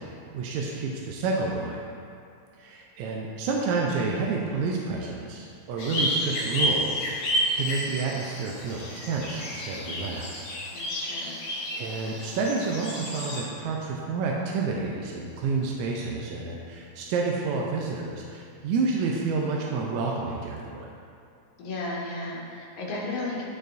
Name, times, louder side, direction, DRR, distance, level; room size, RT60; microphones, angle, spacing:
voice 1, 0.0-1.8 2.6-10.4 11.7-20.9, right 4 dB, 80° right, -2 dB, 1.7 m, -29 dB
sound 1, 5.8-13.4, equal, 60° left, 2.5 m, -31 dB
voice 2, 10.7-11.4 21.6-23.4, left 2 dB, 80° left, -4 dB, 2.7 m, -34 dB
11.0 x 4.7 x 2.5 m, 2.5 s
omnidirectional pair, 3.7 m